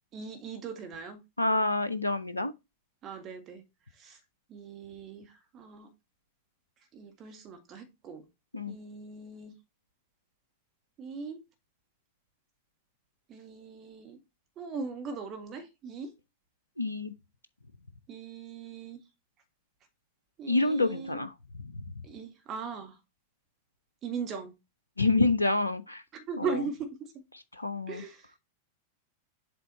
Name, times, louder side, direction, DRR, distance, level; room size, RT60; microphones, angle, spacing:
voice 1, 0.1-1.2 3.0-3.6 4.0-4.2 4.5-5.9 6.9-8.2 8.7-9.5 11.0-11.4 13.3-14.2 14.6-16.1 18.1-19.0 20.4-21.2 22.0-23.0 24.0-24.5 26.1-26.9 27.9-28.3, right 5 dB, 30° right, 1.7 m, -39 dB
voice 2, 1.4-2.5 8.5-8.8 16.8-17.1 20.5-21.3 21.6-21.7 25.0-26.0 26.4-26.5 27.6-28.0, left 2 dB, 85° left, 0.5 m, -27 dB
7.7 x 3.3 x 4.1 m
figure-of-eight pair, 90°, 0 cm